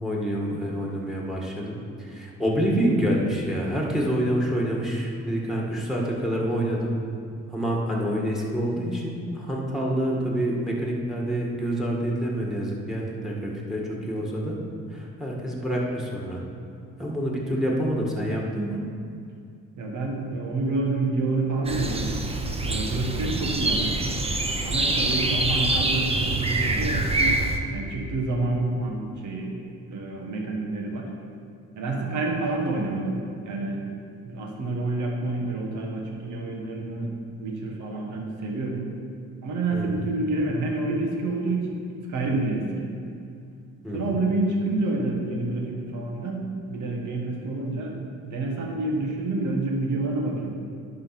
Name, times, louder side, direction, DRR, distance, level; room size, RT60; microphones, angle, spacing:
voice 1, 0.0-6.9 7.5-14.6 14.9-16.4 17.0-18.8 39.7-40.1 43.8-44.2, equal, ahead, -2 dB, 1.7 m, -27 dB
voice 2, 19.8-22.2 22.6-24.2 24.6-27.4 27.7-29.5 29.9-31.1 31.7-33.8 34.2-37.1 37.4-38.8 39.4-41.8 42.1-42.9 43.9-48.0 48.2-50.5, right 2 dB, 75° right, 0 dB, 1.6 m, -28 dB
sound 1, 21.7-27.6, right 2 dB, 20° right, 0.8 m, -25 dB
11.0 x 3.8 x 5.9 m, 2.4 s
cardioid pair, 90°, 30 cm